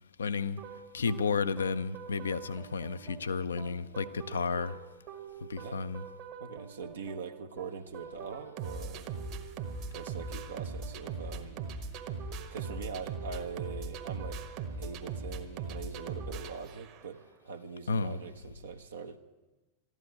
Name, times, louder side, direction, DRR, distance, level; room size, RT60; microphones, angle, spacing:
voice 1, 0.2-0.6 0.9-4.8 5.5-6.0 17.9-18.2, left 5 dB, 70° left, 0.5 m, -32 dB
sound 1, 0.6-17.2, right 4 dB, 40° right, 1.3 m, -41 dB
voice 2, 6.4-9.1 9.9-11.7 12.5-14.4 14.8-19.2, right 5 dB, 65° right, 0.8 m, -42 dB
13.0 x 11.0 x 8.5 m
figure-of-eight pair, 90°, 0 cm